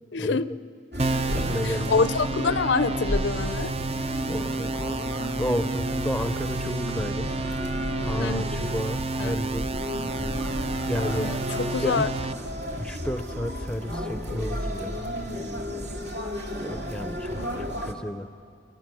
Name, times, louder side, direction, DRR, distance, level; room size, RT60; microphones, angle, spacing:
voice 1, 0.1-0.5 1.6-3.7 8.2-8.4 9.2-9.4 11.0-12.1 17.4-17.5, left 4 dB, 70° left, 14 dB, 0.6 m, -26 dB
sound 1, 0.9-17.9, equal, 65° right, 2.3 m, -33 dB
sound 2, 1.0-12.3, right 3 dB, 35° right, 0.6 m, -31 dB
voice 2, 1.3-2.1 4.3-5.0 5.4-7.3 8.1-9.7 10.9-12.1 12.8-15.0 16.6-18.3, equal, 5° left, 11 dB, 0.7 m, -32 dB
29.0 x 27.0 x 6.3 m, 2.4 s
head